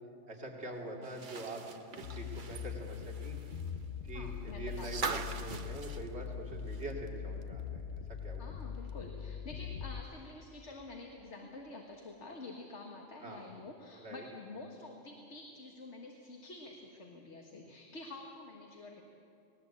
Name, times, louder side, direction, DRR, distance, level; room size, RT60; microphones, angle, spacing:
voice 1, 0.3-3.4 4.0-8.5 13.2-13.4 14.0-14.3, right 2 dB, 70° right, 0 dB, 2.9 m, -44 dB
sound 1, 1.0-7.1 7.4-7.5 8.9-9.0, right 5 dB, 50° right, 1.0 m, -43 dB
sound 2, 2.0-10.0, left 7 dB, 60° left, 1.0 m, -42 dB
voice 2, 4.1-5.2 8.4-19.0, left 2 dB, 80° left, 1 dB, 2.0 m, -48 dB
19.5 x 19.0 x 8.6 m, 2.7 s
omnidirectional pair, 1.2 m